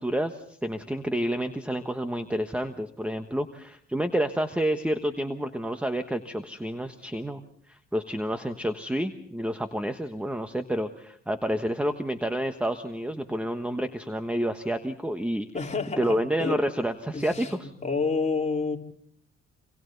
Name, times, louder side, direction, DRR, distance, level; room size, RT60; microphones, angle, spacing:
voice 1, 0.0-15.5 16.0-17.7, equal, 5° right, 8 dB, 1.2 m, -29 dB
voice 2, 15.5-16.6 17.1-18.8, left 4 dB, 20° left, 0 dB, 4.1 m, -29 dB
28.0 x 25.0 x 4.0 m, 0.66 s
cardioid pair, 90°, 30 cm